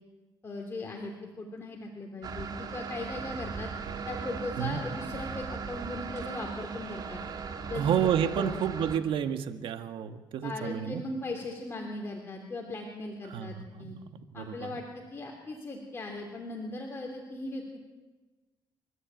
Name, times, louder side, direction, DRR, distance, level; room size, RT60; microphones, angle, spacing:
voice 1, 0.4-3.7 4.1-7.2 7.7-7.9 8.3-8.6 10.4-13.9 14.3-17.8, left 2 dB, 30° left, 1 dB, 3.3 m, -38 dB
sound 1, 2.2-9.0, right 5 dB, 50° right, 2.2 m, -38 dB
voice 2, 7.7-11.0 13.3-14.0 14.4-14.7, right 9 dB, 75° right, 8 dB, 1.6 m, -30 dB
28.0 x 14.0 x 9.2 m, 1.2 s
cardioid pair, 115°, 9 cm